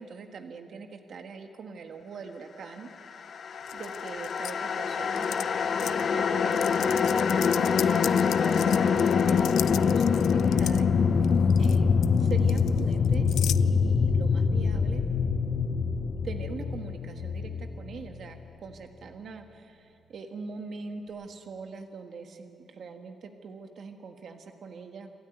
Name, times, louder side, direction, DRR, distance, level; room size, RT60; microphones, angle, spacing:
voice 1, 0.0-3.4 3.7-5.3 5.8-10.9 11.6-11.9 12.2-13.3 13.6-15.0 16.2-25.1, right 5 dB, 55° right, 5 dB, 1.5 m, -42 dB
sound 1, 3.3-18.5, left 6 dB, 45° left, 0.7 m, -25 dB
sound 2, 3.7-4.5 5.1-5.4 5.8-6.0 6.5-10.8 11.2-11.8 12.0-13.6, left 11 dB, 85° left, 0.4 m, -36 dB
Bass guitar, 14.8-21.1, right 6 dB, 15° right, 6.2 m, -56 dB
26.5 x 13.0 x 9.2 m, 2.6 s
wide cardioid pair, 170°, 0 cm